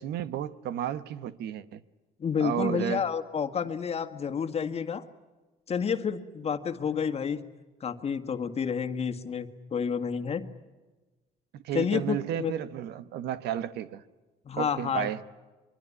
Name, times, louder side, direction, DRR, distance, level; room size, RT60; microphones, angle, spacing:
voice 1, 0.0-1.8 2.4-3.0 11.5-14.0 14.6-15.2, right 10 dB, 75° right, 1.2 m, -32 dB
voice 2, 2.2-5.0 5.7-7.4 7.8-10.5 11.7-12.5 14.5-15.1, left 6 dB, 35° left, 1.8 m, -30 dB
24.0 x 23.5 x 9.7 m
cardioid pair, 110°, 17 cm